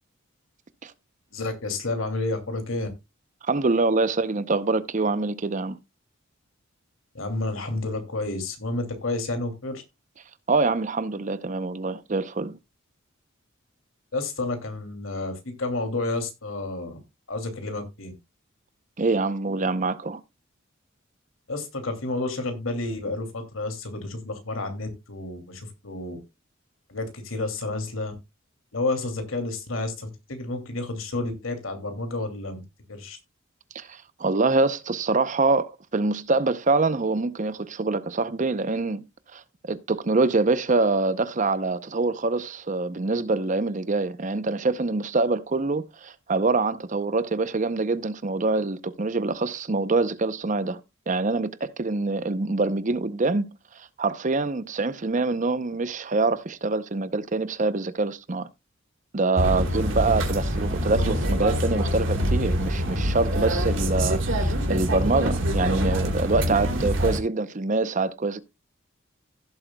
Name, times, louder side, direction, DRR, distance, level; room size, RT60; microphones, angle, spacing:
voice 1, 1.3-2.9 7.1-9.8 14.1-17.0 17.3-18.1 21.5-26.2 26.9-28.1 28.7-32.6 32.9-33.2, left 2 dB, 90° left, 2.6 m, -30 dB
voice 2, 3.4-5.8 10.5-12.6 19.0-20.2 33.7-39.1 39.3-50.8 51.1-58.5 59.1-68.4, right 3 dB, 40° right, 0.7 m, -25 dB
sound 1, 59.4-67.2, equal, 70° right, 2.8 m, -25 dB
16.0 x 7.7 x 2.3 m
head